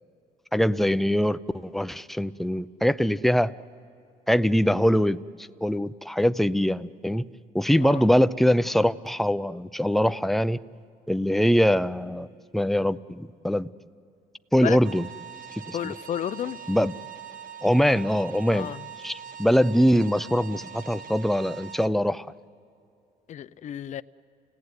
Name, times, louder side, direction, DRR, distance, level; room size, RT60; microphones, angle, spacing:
voice 1, 0.5-3.5 4.3-7.3 7.5-10.6 11.1-12.3 12.5-13.7 14.5-15.1 15.5-15.9 16.7-16.9 17.6-18.7 19.0-22.3, equal, ahead, 0.5 m, -23 dB
sound 1, 14.8-21.9, right 8 dB, 55° right, 1.3 m, -42 dB
voice 2, 15.7-16.6 18.5-18.8 23.3-24.0, left 10 dB, 45° left, 0.6 m, -32 dB
29.5 x 17.0 x 9.6 m
cardioid pair, 110°, 17 cm